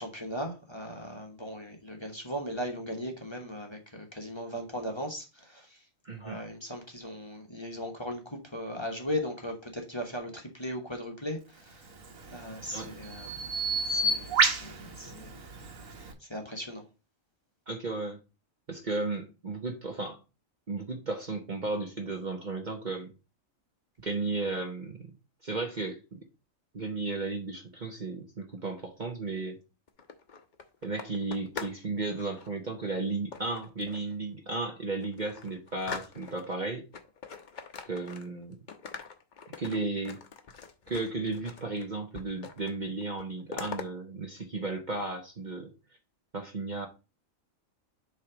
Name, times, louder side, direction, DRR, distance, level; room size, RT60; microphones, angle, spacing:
voice 1, 0.0-5.8 6.2-11.9 12.3-13.3 13.9-15.6 16.0-16.8, equal, 20° left, 1.3 m, -38 dB
voice 2, 6.0-6.4 12.7-12.9 17.7-18.2 18.7-20.2 20.7-23.1 24.0-25.1 25.4-26.2 26.7-29.6 30.8-36.9 37.8-38.6 39.6-40.2 40.9-45.7 46.3-46.9, right 3 dB, 40° right, 1.0 m, -34 dB
Bird vocalization bird call bird song, 11.9-16.1, right 3 dB, 80° right, 1.6 m, -31 dB
sound 1, 29.9-31.8 32.1-32.5 33.3-34.1 34.6-34.7 35.0-36.6 36.9-38.4 38.7-41.9 42.1-42.8 43.0-43.9, left 5 dB, 45° left, 0.8 m, -43 dB
7.4 x 3.5 x 4.9 m
omnidirectional pair, 1.4 m